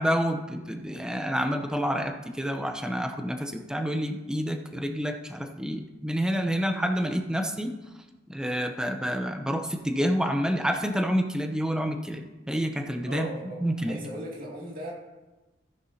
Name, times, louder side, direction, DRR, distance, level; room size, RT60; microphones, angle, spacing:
voice 1, 0.0-7.7 8.3-13.3 13.6-14.0, equal, 5° right, 5 dB, 0.7 m, -28 dB
voice 2, 13.0-14.9, equal, 45° right, -3 dB, 2.5 m, -37 dB
14.5 x 9.7 x 2.8 m, 1.1 s
head